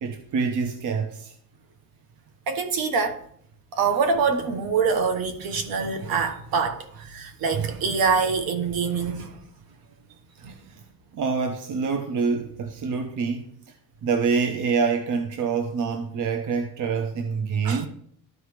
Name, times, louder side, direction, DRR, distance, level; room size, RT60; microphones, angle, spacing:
voice 1, 0.0-1.3 10.5-10.8 11.1-13.8 14.0-17.9, right 5 dB, 50° right, 0.8 m, -26 dB
voice 2, 2.5-3.2 3.7-9.4 10.4-10.5 17.6-17.8, right 5 dB, 70° right, 1.3 m, -25 dB
12.5 x 4.6 x 3.2 m
cardioid pair, 130°, 38 cm